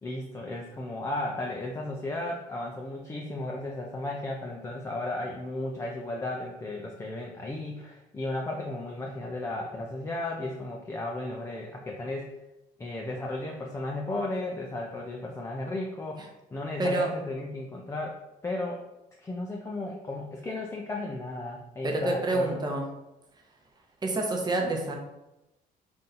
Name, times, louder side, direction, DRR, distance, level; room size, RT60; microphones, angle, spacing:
voice 1, 0.0-12.3 12.8-18.8 19.2-22.7, left 2 dB, 15° left, -1 dB, 0.5 m, -34 dB
voice 2, 21.8-22.9 24.0-24.9, right 2 dB, 25° right, 1 dB, 0.8 m, -27 dB
3.7 x 2.6 x 4.2 m, 0.95 s
cardioid pair, 110°, 17 cm